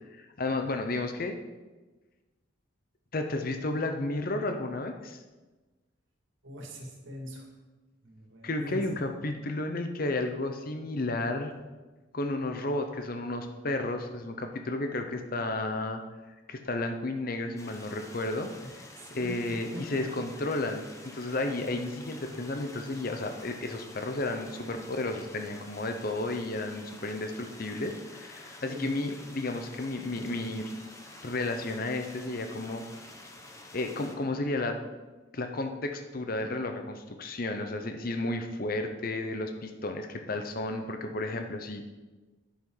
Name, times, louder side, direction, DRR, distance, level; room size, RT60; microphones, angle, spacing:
voice 1, 0.2-1.4 3.1-5.2 8.4-11.5 12.1-16.0 16.5-18.5 19.1-20.9 21.1-30.7 31.2-32.8 33.7-34.8 35.3-41.9, left 2 dB, 50° left, 6 dB, 0.8 m, -32 dB
voice 2, 6.4-7.4 8.0-8.8 19.0-20.0 22.2-22.3 28.7-28.9, equal, 80° right, 0 dB, 2.4 m, -42 dB
sound 1, 17.6-34.1, left 1 dB, 15° left, 1.0 m, -49 dB
10.5 x 9.8 x 4.0 m, 1.2 s
head